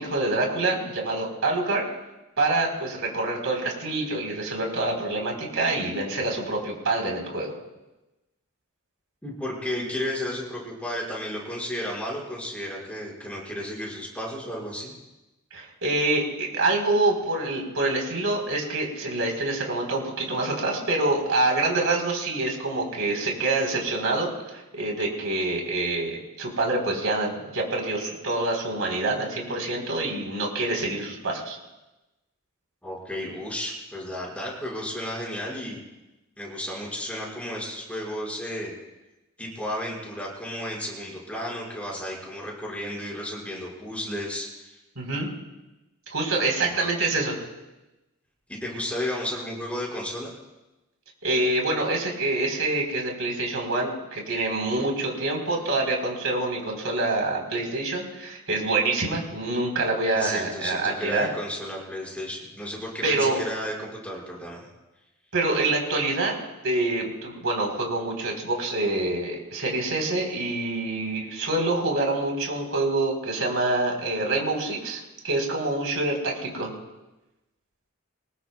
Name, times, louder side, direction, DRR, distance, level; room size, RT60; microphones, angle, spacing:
voice 1, 0.0-1.8 2.4-7.5 15.5-31.6 45.0-45.3 46.1-47.4 51.2-61.3 63.0-63.4 65.3-66.3 66.6-76.7, right 2 dB, 70° right, 1 dB, 4.0 m, -26 dB
voice 2, 9.2-14.9 32.8-35.8 36.4-38.7 39.4-44.8 46.6-46.9 48.5-50.3 60.1-64.7 73.4-73.5, left 1 dB, 5° left, -3 dB, 5.4 m, -33 dB
24.5 x 21.0 x 2.3 m, 1.0 s
head